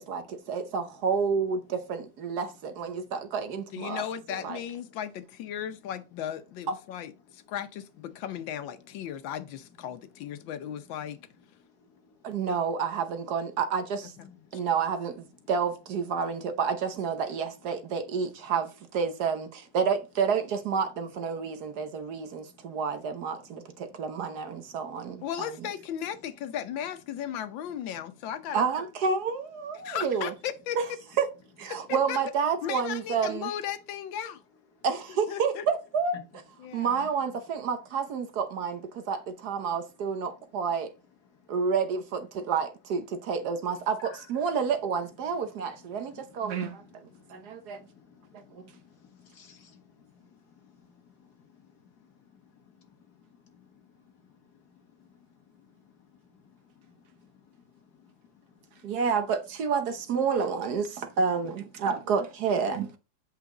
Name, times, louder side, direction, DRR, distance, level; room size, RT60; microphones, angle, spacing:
voice 1, 0.0-4.0 4.3-4.6 12.2-14.1 14.5-25.7 28.5-30.3 30.8-30.9 31.2-31.3 31.6-33.5 34.8-36.2 36.7-40.9 41.5-46.8 47.3-47.8 48.3-48.6 58.8-62.9, right 6 dB, 60° right, 1.3 m, -29 dB
voice 2, 3.7-11.2 25.2-28.6 29.8-30.8 31.9-32.2 32.6-34.4 35.3-35.7 36.6-37.1, left 9 dB, 90° left, 1.6 m, -36 dB
voice 3, 47.1-49.8 56.9-57.0, left 8 dB, 60° left, 1.7 m, -52 dB
8.4 x 5.1 x 3.8 m
omnidirectional pair, 2.0 m